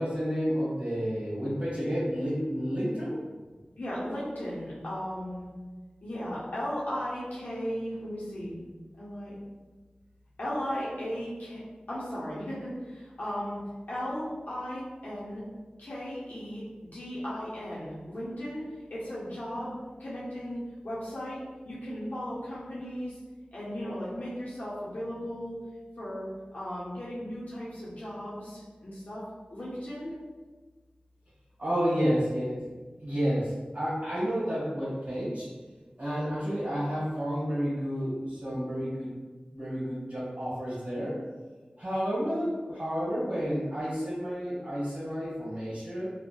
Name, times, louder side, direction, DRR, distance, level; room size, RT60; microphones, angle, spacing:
voice 1, 0.0-3.2 31.6-32.7 33.0-35.5 36.0-39.1 39.5-41.2 41.8-46.1, equal, 45° right, -9 dB, 1.0 m, -30 dB
voice 2, 3.8-5.5 6.0-8.6 9.0-9.4 10.4-11.6 11.9-13.6 13.9-15.4 15.8-16.6 16.9-18.6 18.9-23.2 23.5-25.6 26.0-29.2 29.5-30.2, equal, 60° left, -9 dB, 0.6 m, -36 dB
2.7 x 2.0 x 2.2 m, 1.3 s
wide cardioid pair, 65°, 3 cm